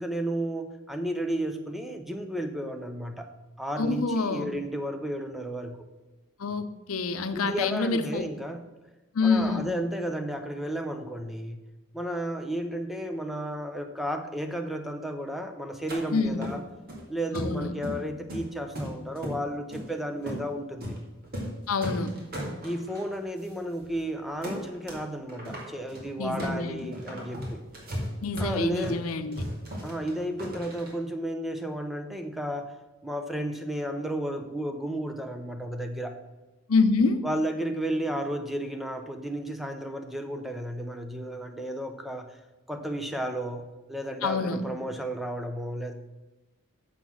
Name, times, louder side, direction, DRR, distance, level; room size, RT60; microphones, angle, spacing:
voice 1, 0.0-3.3 3.6-5.8 7.3-8.6 9.2-11.6 11.9-16.6 17.1-21.0 22.6-27.6 28.4-29.0 29.8-32.8 33.0-36.2 37.2-42.4 42.7-45.9, right 1 dB, ahead, 6 dB, 0.5 m, -33 dB
voice 2, 3.8-4.5 6.4-8.3 9.1-9.7 16.1-16.5 17.3-17.7 21.7-22.1 26.2-26.9 28.2-29.5 36.7-37.2 44.2-44.6, left 4 dB, 80° left, 10 dB, 0.6 m, -27 dB
sound 1, 15.9-16.0 16.4-17.0 17.3-18.0 18.3-19.4 19.7-19.9 20.3-20.4 20.8-21.0 21.2-21.5 21.8-23.0 23.4-23.5 23.8-24.0 24.4-25.0 25.3-30.9, equal, 45° right, 2.0 m, -36 dB
7.0 x 6.0 x 6.1 m, 1.1 s
head